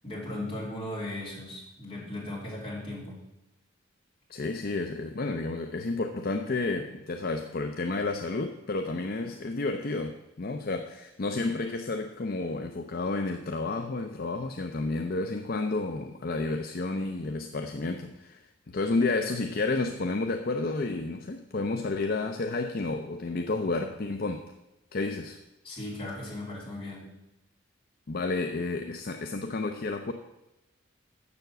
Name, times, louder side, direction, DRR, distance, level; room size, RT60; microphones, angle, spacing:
voice 1, 0.0-3.2 25.6-27.1, left 1 dB, 30° left, -5 dB, 4.0 m, -37 dB
voice 2, 4.3-18.4 18.7-24.5 24.9-25.4 28.1-30.1, left 3 dB, 50° left, 5 dB, 0.6 m, -31 dB
7.0 x 6.9 x 7.8 m, 0.92 s
head